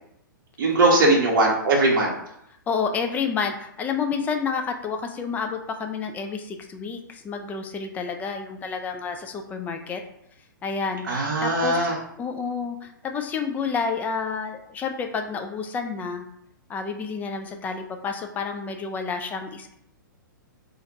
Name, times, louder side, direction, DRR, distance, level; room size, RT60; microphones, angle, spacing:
voice 1, 0.6-2.2 11.1-11.9, right 2 dB, 65° right, -3 dB, 0.7 m, -20 dB
voice 2, 2.7-10.0 10.6-11.9 12.2-16.3 16.7-19.7, left 5 dB, 15° left, 5 dB, 0.3 m, -29 dB
2.5 x 2.1 x 3.9 m, 0.75 s
hypercardioid pair, 120°, 11 cm